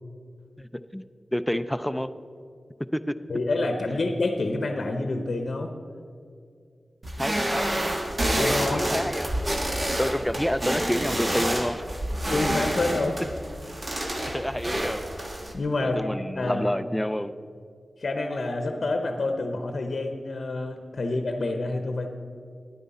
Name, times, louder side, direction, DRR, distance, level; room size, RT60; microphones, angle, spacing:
voice 1, 0.6-1.0 1.3-2.1 2.9-3.1 7.2-7.8 8.3-9.6 10.0-11.8 12.5-12.6 13.9-15.0 15.8-17.4, equal, 5° left, 12 dB, 0.5 m, -29 dB
voice 2, 3.3-5.7 8.3-8.8 12.3-13.2 15.5-16.1 16.4-16.7 18.0-22.2, left 2 dB, 65° left, 5 dB, 0.8 m, -28 dB
sound 1, 7.0-15.5, right 1 dB, 40° right, 1.4 m, -28 dB
10.5 x 9.5 x 4.2 m, 2.3 s
cardioid pair, 45°, 0 cm